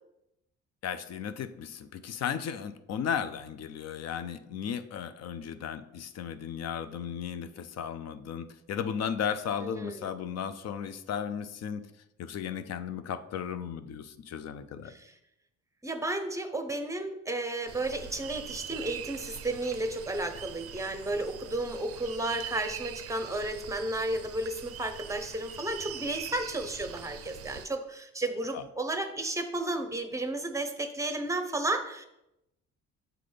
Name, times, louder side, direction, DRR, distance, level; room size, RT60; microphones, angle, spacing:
voice 1, 0.8-11.8 12.2-14.9 28.5-28.6, left 8 dB, 60° left, 12 dB, 0.5 m, -35 dB
voice 2, 9.6-10.1 14.9-15.1 15.8-32.1, right 2 dB, 10° right, 8 dB, 0.7 m, -33 dB
sound 1, 17.7-27.7, right 10 dB, 50° right, 0.4 m, -43 dB
7.7 x 3.9 x 3.3 m, 0.85 s
cardioid pair, 90°, 30 cm